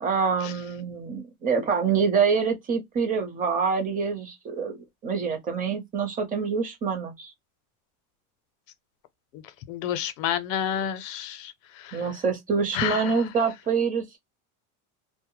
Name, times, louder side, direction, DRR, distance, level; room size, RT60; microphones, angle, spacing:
voice 1, 0.0-4.8 5.0-7.3 11.9-14.2, right 5 dB, 20° right, 0.7 m, -26 dB
voice 2, 9.7-12.0 12.7-13.2, left 9 dB, 60° left, 0.7 m, -30 dB
2.2 x 2.1 x 2.9 m
supercardioid pair, 130°, 45 cm